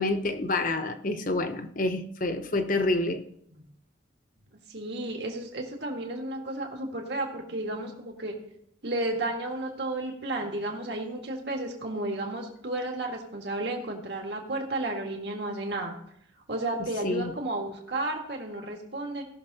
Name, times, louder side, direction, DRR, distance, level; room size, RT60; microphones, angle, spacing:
voice 1, 0.0-3.2 17.0-17.3, left 2 dB, 45° left, 0.9 m, -28 dB
voice 2, 4.7-8.4 8.8-15.9 16.5-19.2, right 2 dB, 60° right, 1.8 m, -32 dB
17.5 x 6.4 x 4.1 m
head